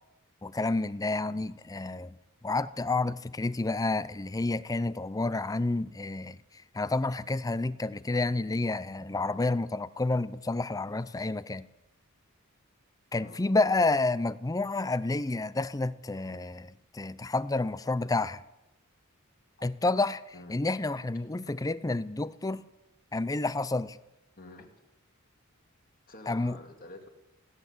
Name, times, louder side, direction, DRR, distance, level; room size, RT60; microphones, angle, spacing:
voice 1, 0.4-2.2 2.4-6.4 6.7-11.7 13.1-18.4 19.6-20.2 20.5-22.6 23.1-24.0 26.3-26.6, left 2 dB, 15° left, 0.5 m, -29 dB
voice 2, 13.1-13.5 20.3-20.5 24.4-24.7 26.1-27.1, left 2 dB, 40° left, 2.4 m, -48 dB
16.5 x 11.0 x 7.9 m
head